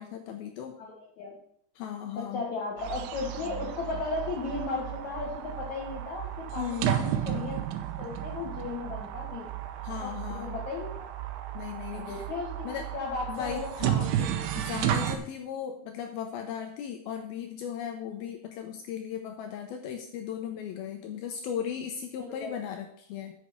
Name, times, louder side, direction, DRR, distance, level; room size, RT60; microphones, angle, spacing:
voice 1, 0.0-0.7 1.8-2.5 6.6-7.1 9.8-10.6 11.5-12.3 12.6-12.9 13.3-23.3, left 8 dB, 90° left, 4 dB, 2.2 m, -37 dB
voice 2, 0.8-1.3 2.2-7.6 8.0-9.5 10.0-11.1 11.9-13.7 14.2-14.3 22.2-22.6, left 4 dB, 55° left, 0 dB, 2.2 m, -36 dB
sound 1, 2.8-15.2, right 11 dB, 80° right, 2.5 m, -33 dB
7.3 x 6.0 x 7.3 m, 0.67 s
omnidirectional pair, 5.1 m